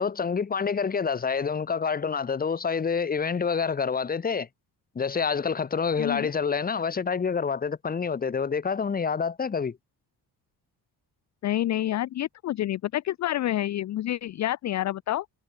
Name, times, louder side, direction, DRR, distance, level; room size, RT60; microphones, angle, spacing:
voice 1, 0.0-4.5 4.9-9.8, left 6 dB, 25° left, 1.0 m, -27 dB
voice 2, 6.0-6.3 11.4-15.3, left 13 dB, 50° left, 0.5 m, -28 dB
cardioid pair, 150°, 38 cm